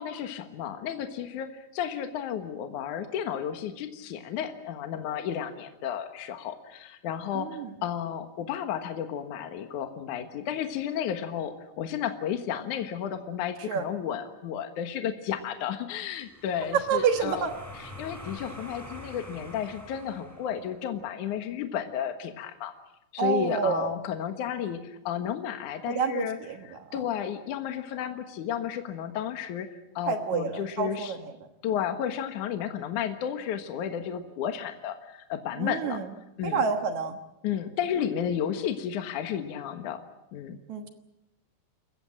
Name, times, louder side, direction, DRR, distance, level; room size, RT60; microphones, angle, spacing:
voice 1, 0.0-7.5 7.8-17.5 17.8-22.7 23.1-26.4 26.6-29.7 30.0-31.1 31.6-36.0 36.4-36.6 37.4-40.0 40.3-40.6, left 9 dB, 60° left, 7 dB, 2.3 m, -32 dB
voice 2, 7.3-7.7 13.7-13.9 16.9-17.5 23.2-23.9 25.9-27.0 30.1-31.3 35.6-36.1 36.4-37.2 40.7-40.9, right 6 dB, 60° right, 7 dB, 2.0 m, -28 dB
sound 1, 16.3-21.0, left 1 dB, 5° right, 3.7 m, -45 dB
28.5 x 15.0 x 8.8 m, 0.91 s
omnidirectional pair, 5.0 m